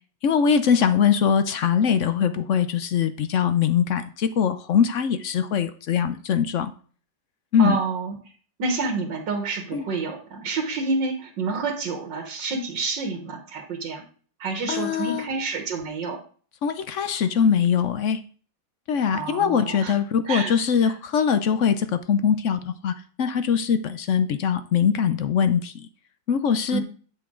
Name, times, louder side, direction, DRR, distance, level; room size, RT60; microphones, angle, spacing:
voice 1, 0.2-6.7 7.5-7.8 9.7-9.8 14.7-15.3 16.6-18.2 18.9-22.9 23.2-25.9 26.3-26.8, left 7 dB, 60° left, 11 dB, 0.8 m, -22 dB
voice 2, 7.6-8.1 8.6-14.0 14.4-16.2 19.1-20.0 20.3-20.5 20.8-21.0 26.7-26.8, right 4 dB, 80° right, 4 dB, 2.0 m, -28 dB
12.0 x 7.0 x 3.8 m, 0.43 s
omnidirectional pair, 1.9 m